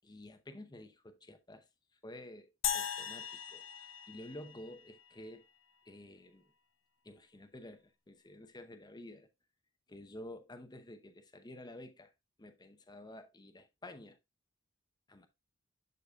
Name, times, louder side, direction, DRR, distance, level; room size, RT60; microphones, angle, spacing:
voice 1, 0.0-1.7 2.0-5.4 5.9-6.5 7.0-9.3 9.9-12.1 12.4-14.2 15.1-15.3, left 1 dB, 20° left, 0.8 m, -51 dB
sound 1, 2.6-5.1, left 9 dB, 75° left, 0.8 m, -39 dB
12.0 x 4.0 x 2.3 m
head